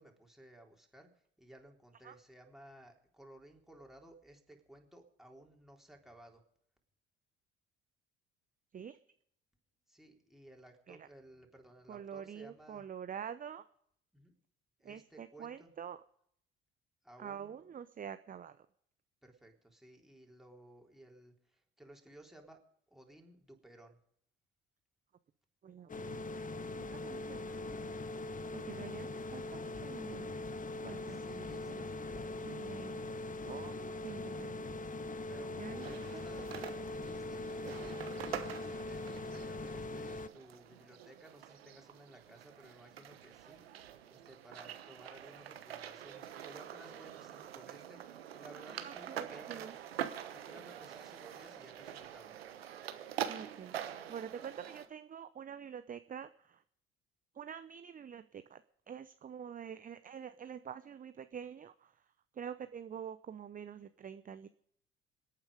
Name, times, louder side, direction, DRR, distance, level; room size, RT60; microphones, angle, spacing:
voice 1, 0.0-6.4 9.9-12.8 14.1-14.3 14.8-15.7 17.0-17.6 19.2-22.6 22.9-24.0 31.1-32.6 35.3-49.8 50.3-52.3, right 1 dB, ahead, 1 dB, 3.8 m, -57 dB
voice 2, 11.9-13.6 14.8-16.0 17.2-18.6 25.6-26.4 26.9-27.8 28.5-30.3 30.8-31.9 32.4-33.0 33.4-34.8 35.6-36.2 48.8-49.7 53.3-53.8 54.1-56.6 57.3-58.6 58.9-62.0 62.3-64.5, right 8 dB, 30° right, 12 dB, 0.7 m, -47 dB
sound 1, 25.9-40.3, left 2 dB, 25° left, 1.0 m, -41 dB
sound 2, 35.8-54.9, right 10 dB, 85° right, 1.1 m, -45 dB
27.0 x 9.0 x 5.0 m, 0.69 s
hypercardioid pair, 55°, 30 cm